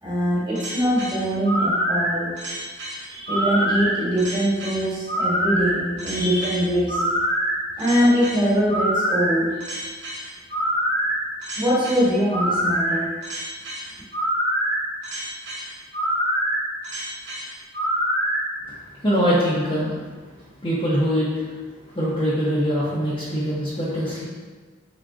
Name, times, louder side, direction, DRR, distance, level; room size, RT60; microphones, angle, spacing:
voice 1, 0.0-2.3 3.1-7.0 7.8-9.6 11.6-13.1, equal, 25° right, -8 dB, 1.3 m, -22 dB
sound 1, 0.5-18.4, equal, 60° right, 0.8 m, -25 dB
voice 2, 19.0-20.0 20.6-21.3 21.9-24.2, equal, 25° left, -10 dB, 0.7 m, -22 dB
3.7 x 3.7 x 2.4 m, 1.4 s
head